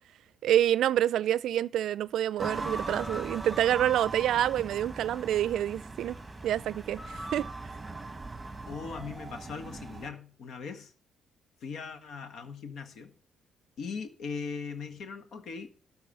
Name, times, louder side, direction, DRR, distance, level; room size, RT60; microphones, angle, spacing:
voice 1, 0.4-6.2 6.4-7.5, right 11 dB, 75° right, 0.4 m, -27 dB
sound 1, 2.4-10.1, right 3 dB, 15° right, 1.4 m, -39 dB
voice 2, 8.7-10.9 11.6-13.1 13.8-15.7, left 5 dB, 70° left, 1.6 m, -39 dB
13.0 x 4.7 x 8.3 m
cardioid pair, 90°, 0 cm